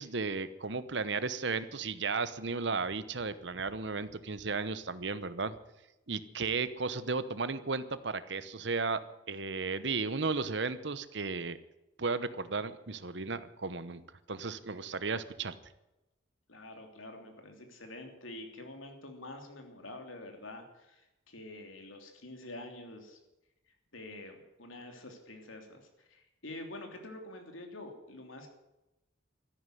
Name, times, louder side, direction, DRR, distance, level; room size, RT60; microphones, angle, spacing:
voice 1, 0.0-5.5 6.1-9.0 9.3-11.6 12.0-14.0 14.3-15.6, right 4 dB, 65° right, 14 dB, 0.9 m, -34 dB
voice 2, 16.5-23.2 23.9-28.5, left 2 dB, 90° left, 4 dB, 3.2 m, -47 dB
13.5 x 11.0 x 9.3 m, 0.96 s
head